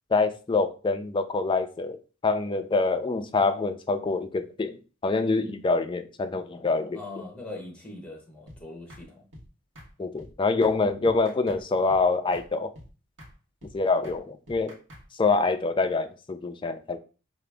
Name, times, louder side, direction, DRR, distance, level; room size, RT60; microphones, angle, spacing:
voice 1, 0.1-2.0 2.2-7.0 10.0-12.7 13.7-14.8 15.2-17.0, left 3 dB, 25° left, 0.4 m, -25 dB
voice 2, 6.9-9.2, left 2 dB, 5° left, 1.0 m, -41 dB
sound 1, 8.5-8.6 8.9-9.0 9.3-9.5 9.7-9.9 10.2-10.3 10.6-10.8 11.0-11.6 11.9-12.0 12.3-12.5 12.7-12.9 13.2-13.3 13.6-13.7 14.0-14.2 14.5-15.0, equal, 65° right, 1.2 m, -47 dB
4.8 x 2.5 x 3.4 m
head